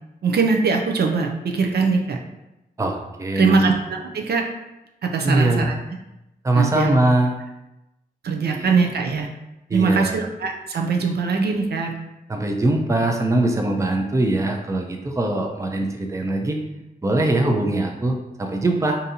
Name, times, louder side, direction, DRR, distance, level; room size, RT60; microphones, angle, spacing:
voice 1, 0.2-2.2 3.4-4.4 5.0-5.7 6.5-6.9 8.2-9.3 9.7-11.9, right 4 dB, 75° right, 2 dB, 0.5 m, -21 dB
voice 2, 2.8-3.7 5.2-5.7 6.4-7.3 8.5-8.7 9.7-10.3 12.3-16.6 17.0-19.0, right 2 dB, 20° right, 2 dB, 0.5 m, -22 dB
3.7 x 2.7 x 2.7 m, 0.93 s
wide cardioid pair, 85°, 17 cm